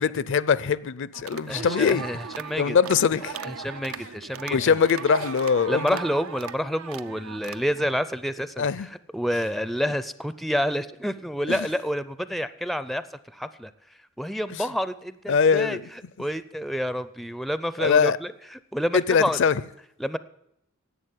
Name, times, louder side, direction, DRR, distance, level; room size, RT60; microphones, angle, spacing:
voice 1, 0.0-2.0 2.6-3.3 4.5-6.0 8.6-8.9 11.5-11.7 15.3-15.8 17.8-18.2 18.9-19.5, left 6 dB, 60° left, 0.5 m, -22 dB
sound 1, 1.1-8.0, right 6 dB, 85° right, 0.6 m, -38 dB
voice 2, 1.5-2.8 3.4-4.8 5.7-13.7 14.2-15.8 16.2-19.4 20.0-20.2, equal, ahead, 0.4 m, -29 dB
11.0 x 8.0 x 9.4 m
head